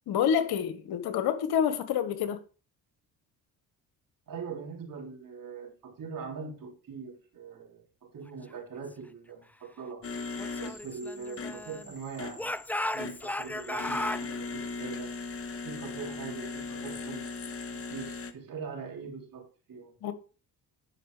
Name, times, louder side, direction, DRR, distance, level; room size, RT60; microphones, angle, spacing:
voice 1, 0.1-2.4 20.0-20.1, left 8 dB, 75° left, 1.5 m, -27 dB
voice 2, 4.3-10.0 10.6-15.1 15.6-17.3 17.9-19.9, right 5 dB, 60° right, 3.8 m, -42 dB
sound 1, 10.0-18.3, left 4 dB, 35° left, 1.4 m, -39 dB
Speech / Shout, 10.4-11.9 12.4-14.3, left 1 dB, 5° left, 0.4 m, -35 dB
10.5 x 5.3 x 5.0 m
supercardioid pair, 65°, 38 cm